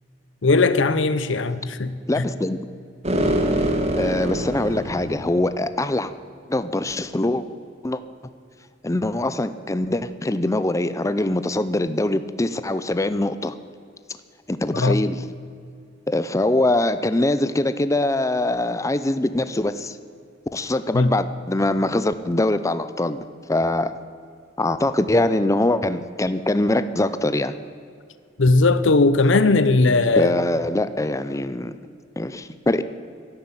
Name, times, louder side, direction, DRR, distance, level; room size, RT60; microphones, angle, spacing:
voice 1, 0.4-2.3 14.7-15.0 20.9-21.1 28.4-30.3, left 3 dB, 85° left, 0.8 m, -18 dB
voice 2, 2.1-2.6 3.9-6.1 6.5-7.4 7.8-8.0 8.8-13.5 14.5-15.2 16.1-20.0 20.5-23.9 24.6-27.5 30.2-31.7 32.2-32.8, left 1 dB, 15° left, 0.5 m, -23 dB
sound 1, 3.0-5.4, right 1 dB, 35° right, 1.8 m, -24 dB
11.5 x 11.5 x 9.0 m
head